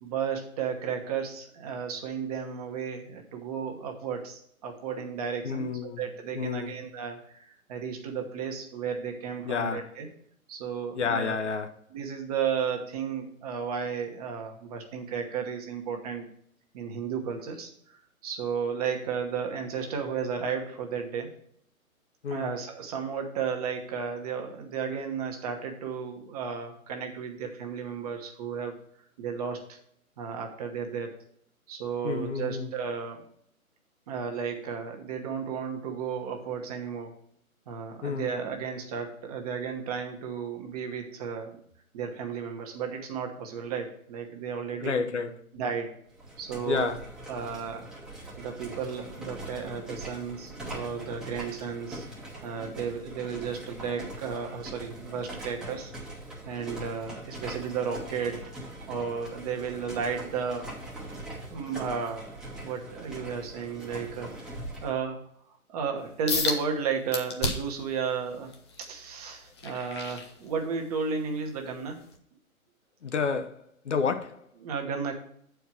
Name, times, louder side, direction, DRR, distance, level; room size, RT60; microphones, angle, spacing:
voice 1, 0.0-10.1 10.5-11.4 11.9-16.2 16.7-18.0 18.2-21.3 22.3-28.8 29.2-29.8 30.2-31.2 31.7-33.2 34.1-37.1 37.7-41.6 41.9-45.0 45.5-46.0 46.4-46.9 47.3-47.9 48.4-52.1 52.4-55.9 56.4-58.5 58.9-60.7 61.5-62.3 62.6-64.3 64.8-65.2 65.7-68.5 68.8-72.0 74.6-75.1, right 6 dB, 25° right, 1.1 m, -33 dB
voice 2, 5.4-6.0 6.3-6.7 9.4-9.9 10.9-11.7 22.2-22.5 32.0-32.7 38.0-38.3 44.8-45.3 46.7-47.1 73.0-73.6 73.8-74.4, left 5 dB, 55° left, 1.0 m, -30 dB
sound 1, 46.1-65.0, right 1 dB, ahead, 1.0 m, -42 dB
sound 2, 66.3-66.6 67.1-67.8 68.3-70.9 71.4-71.6 72.1-72.2, left 3 dB, 20° left, 0.6 m, -32 dB
7.9 x 4.6 x 5.9 m
figure-of-eight pair, 135°, 43 cm